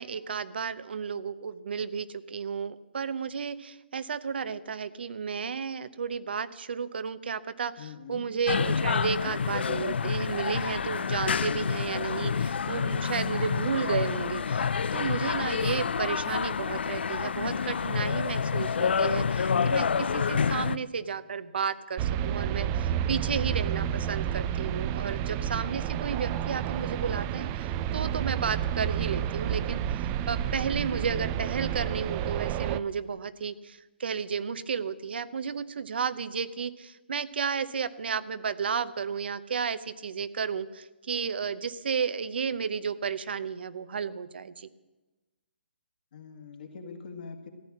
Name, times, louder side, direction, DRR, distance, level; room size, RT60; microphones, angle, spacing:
voice 1, 0.0-44.7, right 6 dB, 65° right, 14 dB, 0.8 m, -33 dB
voice 2, 7.8-8.3 20.5-20.9 46.1-47.5, left 5 dB, 50° left, 5 dB, 2.0 m, -42 dB
sound 1, 8.5-20.8, left 6 dB, 75° left, 0.5 m, -28 dB
sound 2, 22.0-32.8, right 10 dB, 20° right, 0.4 m, -30 dB
14.5 x 10.5 x 7.3 m, 1.1 s
hypercardioid pair, 160°, 6 cm